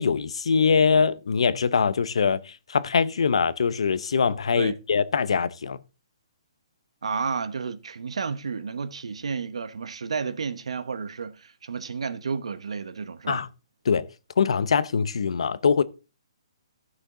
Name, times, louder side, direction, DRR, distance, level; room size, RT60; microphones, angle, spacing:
voice 1, 0.0-5.8 13.3-13.5 13.9-14.1 14.4-15.8, left 5 dB, 70° left, 0.9 m, -23 dB
voice 2, 7.0-13.4, right 5 dB, 80° right, 1.1 m, -31 dB
15.0 x 6.4 x 3.8 m
hypercardioid pair, 175°, 3 cm